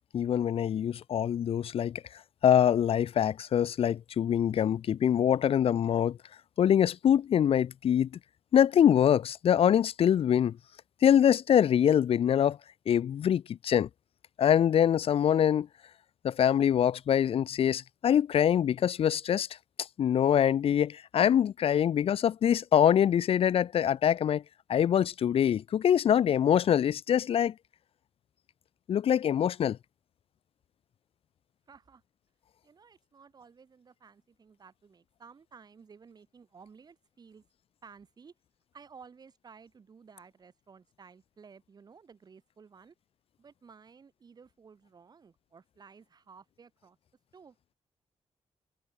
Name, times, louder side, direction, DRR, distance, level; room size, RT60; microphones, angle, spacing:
voice 1, 0.1-2.0 2.4-6.2 6.6-8.1 8.5-10.6 11.0-12.6 12.9-13.9 14.4-15.7 16.2-19.5 19.8-24.4 24.7-27.5 28.9-29.8, left 9 dB, 55° left, 0.7 m, -24 dB
voice 2, 31.7-32.0 32.6-37.4 37.8-38.3 38.7-42.9 43.4-47.0 47.3-47.6, right 5 dB, 35° right, 4.1 m, -55 dB
wide cardioid pair, 170°, 11 cm